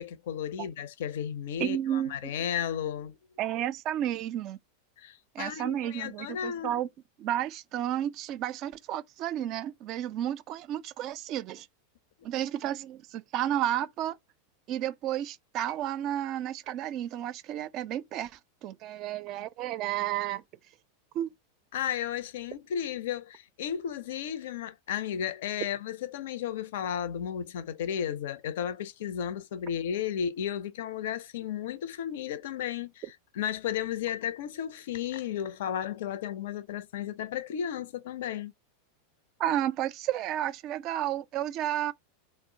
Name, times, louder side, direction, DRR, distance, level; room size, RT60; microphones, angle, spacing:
voice 1, 0.0-3.2 5.0-6.8 21.7-38.5, left 9 dB, 75° left, 0.5 m, -34 dB
voice 2, 1.6-2.2 3.4-4.6 5.3-6.9 7.2-11.7 12.2-14.1 14.7-20.4 21.1-21.3 39.4-41.9, right 11 dB, 45° right, 0.4 m, -32 dB
2.1 x 2.0 x 3.7 m
hypercardioid pair, 115°, 0 cm